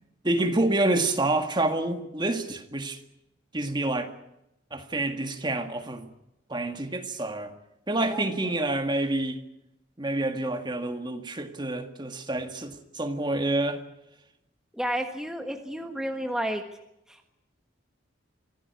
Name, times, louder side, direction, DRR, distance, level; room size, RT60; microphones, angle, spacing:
voice 1, 0.2-3.0 3.5-4.1 4.7-6.1 6.5-7.5 7.9-9.4 10.0-13.8, right 2 dB, 25° right, 1.8 m, -28 dB
voice 2, 14.7-16.6 17.1-17.3, equal, 5° right, 1.5 m, -31 dB
24.5 x 16.5 x 9.5 m
head